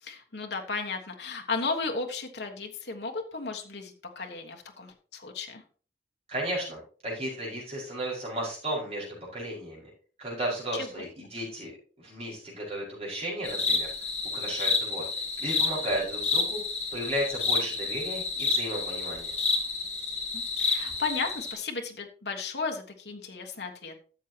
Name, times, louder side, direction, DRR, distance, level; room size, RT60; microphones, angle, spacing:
voice 1, 0.0-5.6 10.7-11.0 20.3-24.0, left 4 dB, 75° left, 3 dB, 1.3 m, -34 dB
voice 2, 6.3-9.1 9.3-9.8 10.2-11.7 12.0-13.9 14.3-15.1 15.4-16.6 16.9-19.3, right 1 dB, 35° right, -4 dB, 5.3 m, -34 dB
sound 1, 13.4-21.5, left 4 dB, 40° left, 1.9 m, -29 dB
13.0 x 7.3 x 2.9 m, 0.40 s
head